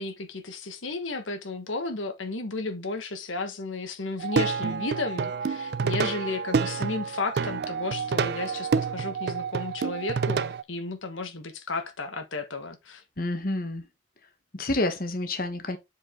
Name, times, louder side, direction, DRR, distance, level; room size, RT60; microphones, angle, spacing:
voice 1, 0.0-13.0, left 3 dB, 90° left, 1.4 m, -33 dB
Plucked string instrument, 4.2-10.6, right 5 dB, 55° right, 0.4 m, -28 dB
voice 2, 13.2-13.8 14.5-15.8, left 2 dB, 45° left, 1.3 m, -28 dB
7.5 x 5.1 x 3.8 m
head